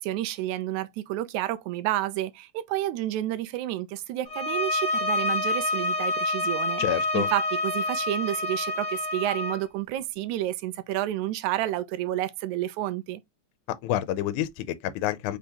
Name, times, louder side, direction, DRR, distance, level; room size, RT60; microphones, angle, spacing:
voice 1, 0.0-6.8 7.1-13.2, right 14 dB, 80° right, 1.9 m, -30 dB
sound 1, 4.3-9.6, left 2 dB, 30° left, 1.5 m, -28 dB
voice 2, 6.8-7.3 13.8-15.4, left 12 dB, 80° left, 2.0 m, -28 dB
5.1 x 3.6 x 2.8 m
omnidirectional pair, 3.5 m